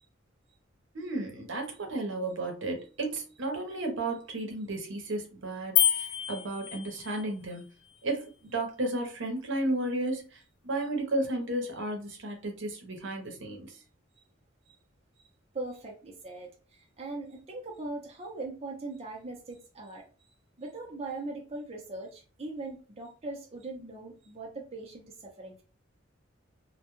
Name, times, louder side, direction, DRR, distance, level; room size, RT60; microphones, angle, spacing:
voice 1, 0.9-7.6 8.0-10.4 10.6-13.7, right 2 dB, 80° right, 0.7 m, -33 dB
sound 1, 5.8-7.3, left 11 dB, 70° left, 0.4 m, -27 dB
voice 2, 15.5-20.0 20.6-25.6, right 2 dB, 30° right, 0.6 m, -40 dB
2.2 x 2.1 x 2.9 m
head